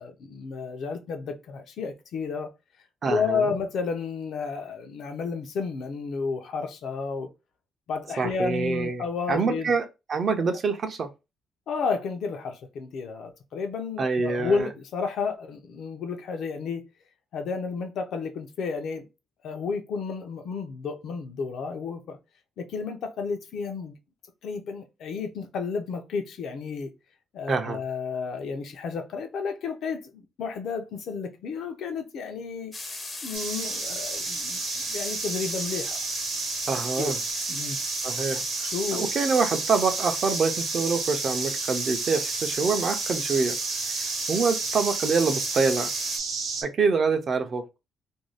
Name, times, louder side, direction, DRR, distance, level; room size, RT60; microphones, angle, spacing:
voice 1, 0.0-2.5 3.1-7.3 7.9-9.7 11.7-16.8 17.3-19.1 19.4-22.2 22.6-23.9 24.4-26.9 27.3-32.7 33.2-36.0 37.0-37.1 37.5-37.8 38.7-39.1, left 5 dB, 65° left, 0.6 m, -31 dB
voice 2, 3.0-3.5 8.2-9.0 9.3-11.1 14.0-14.7 27.5-27.8 36.7-37.2 38.0-38.4 38.9-43.6 44.0-45.9 46.6-47.6, right 4 dB, 40° right, 0.5 m, -26 dB
sound 1, 32.7-46.2, left 2 dB, 20° left, 0.5 m, -37 dB
sound 2, 33.3-46.6, right 5 dB, 75° right, 0.7 m, -31 dB
2.6 x 2.2 x 3.2 m
cardioid pair, 155°, 0 cm